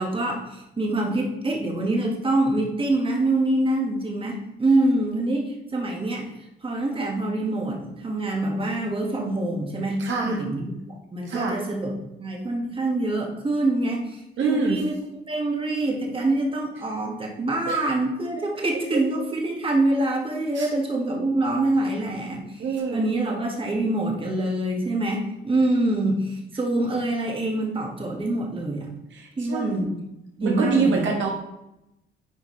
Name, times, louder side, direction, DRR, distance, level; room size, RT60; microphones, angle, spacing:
voice 1, 0.0-6.3 6.6-10.8 11.1-15.0 15.3-28.9 29.4-30.0 30.4-31.1, right 2 dB, 25° right, 0 dB, 1.8 m, -25 dB
voice 2, 10.0-10.4 11.3-11.6 14.4-14.8 17.7-17.8 20.6-20.7 22.6-23.0 29.5-29.8 30.4-31.3, right 4 dB, 70° right, 0 dB, 1.5 m, -25 dB
9.8 x 4.9 x 3.3 m, 0.89 s
cardioid pair, 90°, 20 cm